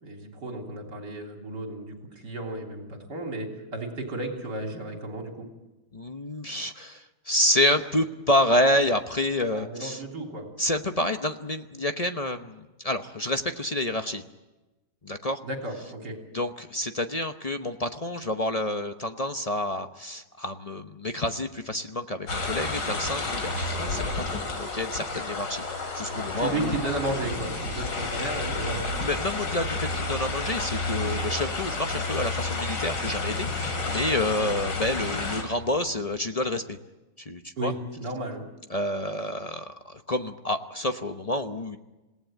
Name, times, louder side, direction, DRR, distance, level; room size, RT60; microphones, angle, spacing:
voice 1, 0.0-5.5 9.5-10.5 15.4-16.2 26.4-28.9 37.6-38.5, right 2 dB, 70° right, 2 dB, 4.0 m, -33 dB
voice 2, 5.9-10.0 10.6-14.2 15.0-15.4 16.3-25.6 25.9-26.8 29.0-36.8 37.3-37.7 38.7-41.8, left 1 dB, 35° left, 7 dB, 0.6 m, -28 dB
sound 1, 22.3-35.4, left 3 dB, 90° left, 3.6 m, -30 dB
26.5 x 18.0 x 9.0 m, 1.1 s
omnidirectional pair, 1.9 m